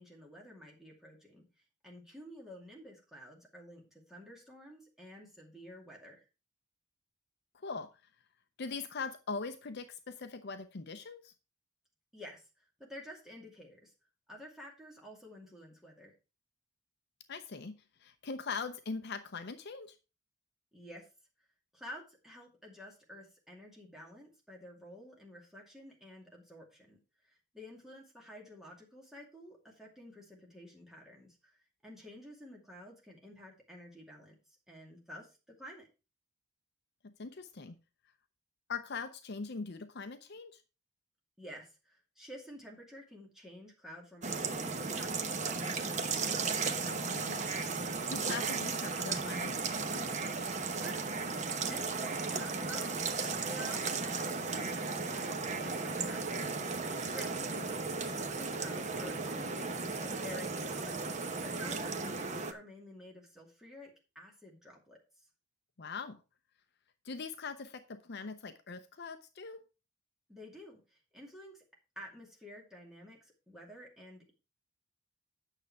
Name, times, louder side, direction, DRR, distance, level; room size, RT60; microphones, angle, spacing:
voice 1, 0.0-1.5 1.8-6.3 12.1-13.9 14.3-16.1 20.7-21.1 21.7-35.9 41.4-46.2 50.7-65.3 70.3-71.6 72.0-74.3, equal, ahead, -2 dB, 2.3 m, -51 dB
voice 2, 8.6-11.3 17.3-17.7 18.0-20.0 37.0-37.8 38.7-40.6 46.8-47.4 48.1-50.0 57.5-57.6 65.8-66.2 67.0-69.6, left 4 dB, 50° left, 9 dB, 0.6 m, -41 dB
sound 1, 44.2-62.5, right 4 dB, 30° right, 0.9 m, -35 dB
9.1 x 6.7 x 4.7 m, 0.31 s
head